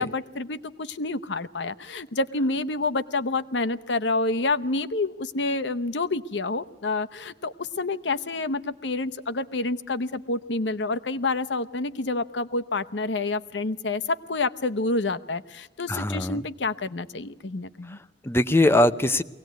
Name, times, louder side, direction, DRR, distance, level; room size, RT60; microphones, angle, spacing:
voice 1, 0.0-18.0, left 3 dB, 80° left, 13 dB, 0.9 m, -28 dB
voice 2, 15.9-16.5 17.9-19.2, left 1 dB, 15° left, 10 dB, 0.7 m, -22 dB
23.0 x 18.0 x 9.3 m, 1.1 s
head